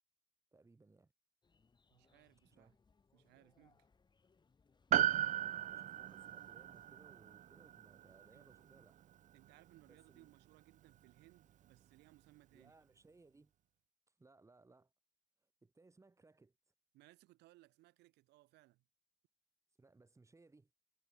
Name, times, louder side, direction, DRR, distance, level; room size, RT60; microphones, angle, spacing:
voice 1, 0.5-1.1 2.4-2.7 5.0-9.0 9.9-10.3 12.5-13.5 14.2-14.9 15.4-16.6 19.8-20.7, right 3 dB, 15° right, 4.4 m, -65 dB
sound 1, 1.4-6.9, left 4 dB, 25° left, 6.5 m, -74 dB
voice 2, 1.9-2.7 3.1-3.8 8.3-8.5 9.3-12.7 16.9-18.8, right 19 dB, 85° right, 4.1 m, -65 dB
Piano, 4.9-9.5 9.8-9.9, right 11 dB, 50° right, 0.6 m, -37 dB
cardioid pair, 110°, 17 cm